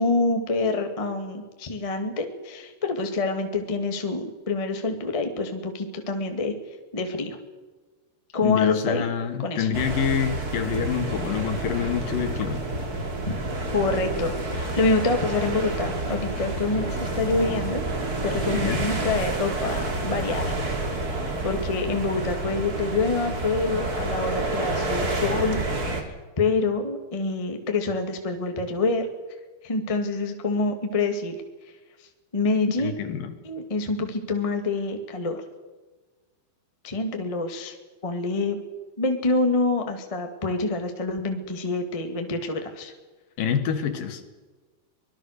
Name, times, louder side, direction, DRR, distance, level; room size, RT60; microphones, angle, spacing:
voice 1, 0.0-6.5 6.9-7.4 8.3-9.0 9.4-9.7 13.2-13.3 13.7-17.8 18.2-20.6 20.9-29.1 29.6-31.4 32.0-32.1 32.3-32.9 33.4-35.4 36.8-37.7 38.0-38.5 39.0-42.9, left 3 dB, 15° left, 4 dB, 1.3 m, -26 dB
voice 2, 8.4-12.6 18.5-18.8 32.8-33.3 43.4-44.2, left 8 dB, 65° left, 7 dB, 3.2 m, -27 dB
sound 1, 9.7-26.0, right 2 dB, 25° right, 2.7 m, -29 dB
24.5 x 20.5 x 6.7 m, 1.3 s
omnidirectional pair, 4.3 m